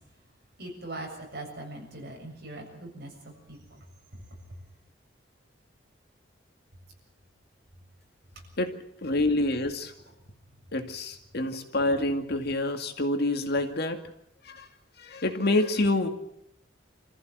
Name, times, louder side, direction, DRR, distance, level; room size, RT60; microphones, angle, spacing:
voice 1, 0.6-3.8 4.1-4.2, right 2 dB, 60° right, 1 dB, 7.2 m, -41 dB
voice 2, 9.0-9.9 10.7-14.0 14.4-14.7 15.0-16.1, left 2 dB, 60° left, 6 dB, 2.2 m, -27 dB
26.5 x 14.5 x 8.0 m, 0.77 s
head